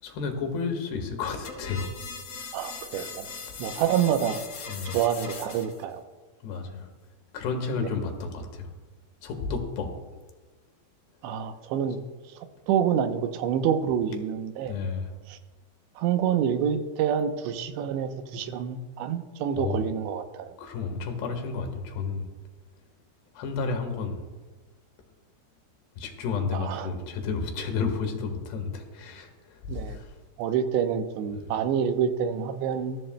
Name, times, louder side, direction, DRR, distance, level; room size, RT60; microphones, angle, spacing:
voice 1, 0.0-1.9 2.9-3.1 3.5-3.8 4.7-5.0 6.4-6.9 7.3-8.7 9.2-9.9 14.7-15.1 19.6-19.8 20.6-22.3 23.3-24.2 26.0-30.2 31.3-31.5, left 5 dB, 70° left, 4 dB, 3.4 m, -32 dB
sound 1, 1.4-5.8, left 5 dB, 50° left, 2.1 m, -40 dB
voice 2, 2.5-3.3 3.6-4.4 4.9-6.0 7.8-7.9 11.2-12.0 12.7-14.7 15.3-15.4 16.0-20.5 26.5-26.9 29.7-30.0 30.4-33.0, right 8 dB, 85° right, 8 dB, 3.0 m, -27 dB
21.0 x 14.5 x 2.2 m, 1.3 s
omnidirectional pair, 5.1 m